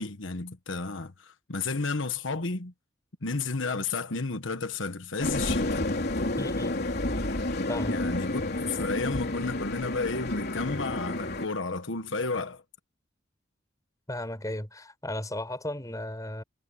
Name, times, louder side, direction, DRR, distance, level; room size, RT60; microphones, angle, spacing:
voice 1, 0.0-2.7 3.2-5.9 7.9-12.6, left 3 dB, 75° left, 1.3 m, -32 dB
sound 1, 5.2-11.5, left 2 dB, 55° left, 3.7 m, -30 dB
voice 2, 6.4-6.8 7.7-8.0 14.1-16.4, left 1 dB, 20° left, 5.4 m, -35 dB
head